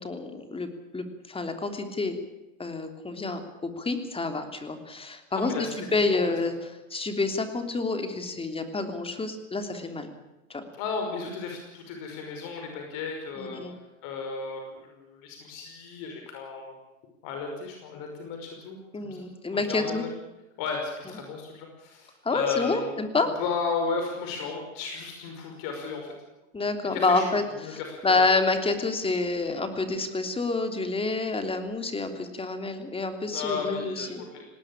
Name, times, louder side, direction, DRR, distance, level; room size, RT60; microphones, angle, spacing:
voice 1, 0.0-2.2 2.6-5.5 5.9-6.5 6.9-10.1 10.5-10.6 13.4-13.7 18.9-20.0 22.2-23.3 26.5-27.4 27.7-34.2, left 3 dB, 15° left, 7 dB, 3.3 m, -28 dB
voice 2, 5.3-6.2 10.7-16.8 17.2-20.1 20.6-22.9 23.4-26.2 26.9-27.3 27.5-28.3 33.3-34.5, left 5 dB, 55° left, 3 dB, 5.5 m, -34 dB
19.0 x 19.0 x 8.8 m, 1.0 s
hypercardioid pair, 115°, 39 cm